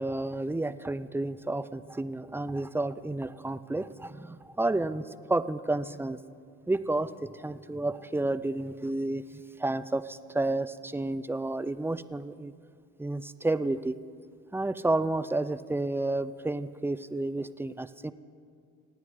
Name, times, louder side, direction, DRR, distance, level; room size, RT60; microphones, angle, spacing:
voice 1, 0.0-6.2 6.7-12.5 13.0-14.0 14.5-18.1, right 2 dB, 10° right, 13 dB, 0.5 m, -31 dB
26.0 x 9.5 x 4.9 m, 2.3 s
cardioid pair, 90°, 30 cm